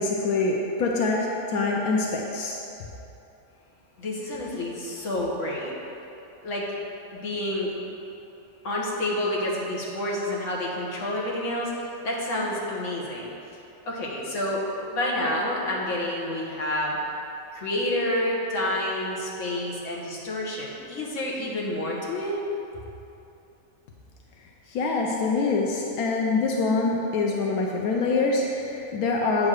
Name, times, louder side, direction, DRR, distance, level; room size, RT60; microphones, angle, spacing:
voice 1, 0.0-2.6 24.7-29.5, left 3 dB, 90° left, -1 dB, 1.2 m, -25 dB
voice 2, 4.0-5.7 6.4-6.7 7.1-7.7 8.6-13.3 13.8-17.0 17.5-22.4, left 1 dB, 60° left, -4 dB, 1.6 m, -29 dB
8.2 x 3.9 x 6.4 m, 2.9 s
omnidirectional pair, 1.5 m